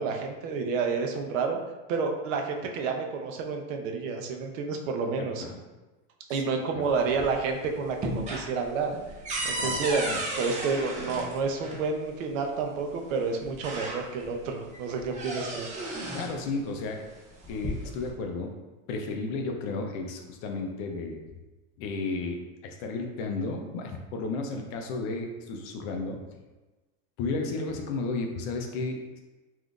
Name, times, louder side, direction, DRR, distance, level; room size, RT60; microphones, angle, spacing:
voice 1, 0.0-1.6 1.9-5.4 6.3-8.9 9.4-10.0 10.4-15.7, right 4 dB, 85° right, 3 dB, 0.6 m, -30 dB
voice 2, 5.2-5.6 6.3-6.8 9.6-9.8 10.0-10.2 16.1-17.0 17.5-18.5 18.9-21.2 21.8-26.2 27.2-29.2, left 3 dB, 55° left, 3 dB, 0.6 m, -33 dB
sound 1, 6.9-7.5 7.8-11.8 12.9-13.0 13.4-14.4 14.7-16.4 17.3-18.1, right 1 dB, 20° right, 0.5 m, -34 dB
3.5 x 2.6 x 2.3 m, 1.2 s
supercardioid pair, 140°, 38 cm